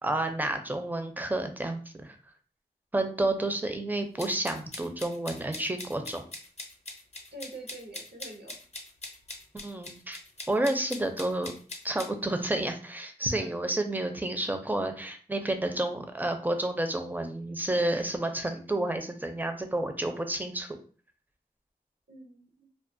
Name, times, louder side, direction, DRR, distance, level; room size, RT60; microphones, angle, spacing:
voice 1, 0.0-2.2 2.9-6.2 9.5-10.2 10.5-11.5 11.8-20.8, right 1 dB, 10° right, 6 dB, 0.4 m, -30 dB
sound 1, 4.2-12.1, left 2 dB, 40° left, 0.6 m, -42 dB
voice 2, 7.3-8.6 13.2-13.5 22.1-22.7, right 2 dB, 85° right, 1 dB, 0.6 m, -45 dB
2.3 x 2.2 x 2.5 m, 0.41 s
wide cardioid pair, 45°, 17 cm